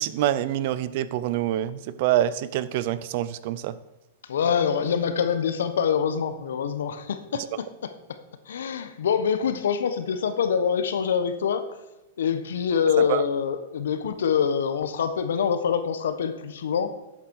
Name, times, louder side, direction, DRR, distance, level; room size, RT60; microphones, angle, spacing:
voice 1, 0.0-3.7 13.0-13.2, right 12 dB, 55° right, 16 dB, 0.6 m, -26 dB
voice 2, 4.3-7.9 8.5-11.6 12.2-16.9, left 7 dB, 85° left, 10 dB, 1.2 m, -25 dB
12.0 x 8.2 x 4.7 m, 1.0 s
hypercardioid pair, 140°, 0 cm